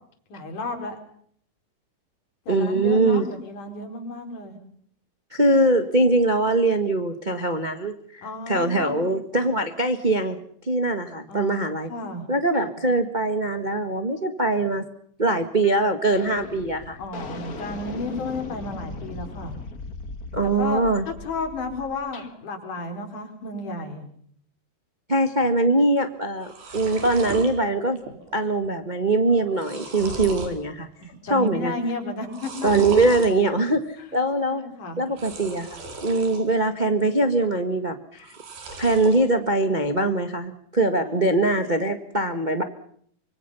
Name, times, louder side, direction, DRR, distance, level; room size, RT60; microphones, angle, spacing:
voice 1, 0.3-1.0 2.5-4.6 8.2-9.0 11.3-12.3 17.0-19.5 20.4-24.1 31.3-32.7 34.0-35.0 41.1-41.2, left 2 dB, 60° left, 4 dB, 5.8 m, -33 dB
voice 2, 2.5-3.3 5.3-10.4 10.6-11.9 12.3-14.8 15.2-17.0 20.3-21.0 25.1-28.0 28.3-30.9 31.3-31.7 32.6-34.6 35.0-38.3 38.8-42.6, right 2 dB, 60° right, 7 dB, 0.4 m, -22 dB
sound 1, 15.6-15.8 16.1-22.3, left 3 dB, 35° left, 1.5 m, -38 dB
sound 2, 26.0-26.1 26.3-27.5 28.0-28.4 28.6-28.7 29.3-30.6 31.0-31.5 32.2-33.3 35.1-36.4 36.8-37.5 38.2-39.2, right 3 dB, 80° right, 6.4 m, -36 dB
25.5 x 24.0 x 5.6 m, 0.63 s
omnidirectional pair, 4.2 m